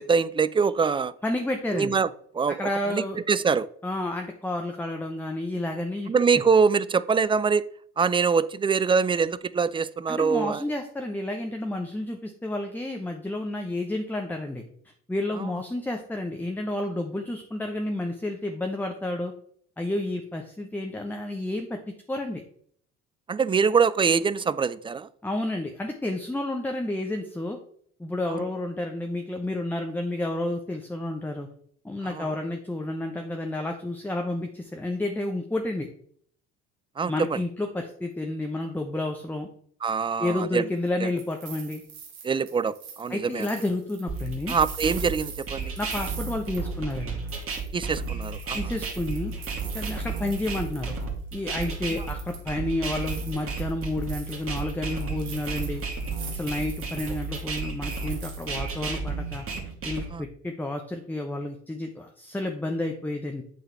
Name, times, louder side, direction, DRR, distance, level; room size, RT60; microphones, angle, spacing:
voice 1, 0.0-1.1 1.7-2.1 2.3-2.6 2.9-3.7 6.1-7.7 8.0-10.6 15.4-15.5 23.3-25.1 28.3-28.4 32.2-32.3 37.0-37.4 39.8-40.6 41.0-41.1 42.2-43.5 44.5-45.7 47.7-48.6 60.1-60.2, right 5 dB, 15° right, 0.3 m, -24 dB
voice 2, 1.2-1.9 2.6-3.2 3.8-6.4 10.1-14.6 15.1-19.3 19.8-21.8 22.1-22.4 25.2-27.6 28.0-31.5 31.8-35.9 37.1-39.5 40.2-41.8 43.1-44.6 45.8-47.2 48.5-49.3 49.7-50.9 51.3-55.8 56.3-59.5 59.8-63.4, left 1 dB, 5° left, 0.9 m, -30 dB
sound 1, 40.9-47.0 47.3-51.0 51.3-52.5 52.8-58.9, right 6 dB, 85° right, 1.7 m, -44 dB
sound 2, 44.1-60.1, right 4 dB, 45° right, 2.1 m, -32 dB
8.2 x 3.9 x 4.6 m
hypercardioid pair, 70°, 32 cm